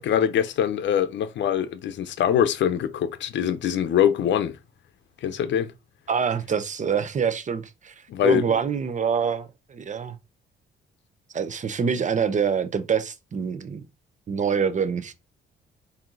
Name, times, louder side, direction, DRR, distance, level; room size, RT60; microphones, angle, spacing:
voice 1, 0.0-4.6 5.2-5.7 8.1-8.4, left 9 dB, 65° left, 0.7 m, -23 dB
voice 2, 6.1-10.1 11.3-13.8 14.3-15.1, right 6 dB, 40° right, 0.8 m, -26 dB
4.4 x 2.8 x 3.9 m
cardioid pair, 90°, 20 cm